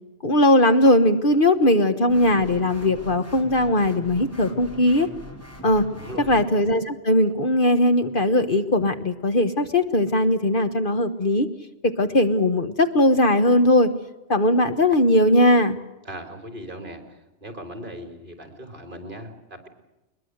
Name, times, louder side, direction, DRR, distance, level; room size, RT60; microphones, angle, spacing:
voice 1, 0.2-5.1 5.6-5.9 6.3-11.5 11.8-13.9 14.3-15.8, left 1 dB, 50° left, 9 dB, 1.4 m, -19 dB
sound 1, 2.1-6.5, equal, 10° left, 2.7 m, -41 dB
voice 2, 5.9-6.4 16.0-19.7, right 1 dB, 45° right, 6 dB, 3.8 m, -38 dB
22.0 x 21.5 x 7.9 m, 0.99 s
omnidirectional pair, 1.2 m